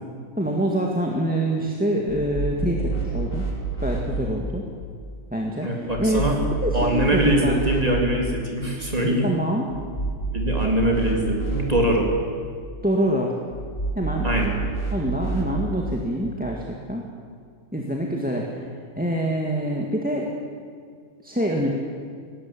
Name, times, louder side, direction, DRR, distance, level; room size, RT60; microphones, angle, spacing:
voice 1, 0.4-3.5 3.8-4.6 5.3-6.2 6.6-7.6 9.2-9.7 12.8-13.4 13.9-14.3 14.6-17.0 17.7-18.5 19.0-20.3 21.2-21.7, right 1 dB, 5° right, 0 dB, 1.9 m, -25 dB
sound 1, 2.1-4.0 5.9-7.8 9.7-11.6 13.5-15.4, right 4 dB, 60° left, 5.9 m, -28 dB
voice 2, 5.6-6.4 6.7-9.3 10.3-12.1 14.2-14.5, equal, 25° right, 0 dB, 3.7 m, -23 dB
19.5 x 18.0 x 8.6 m, 2.1 s
omnidirectional pair, 1.4 m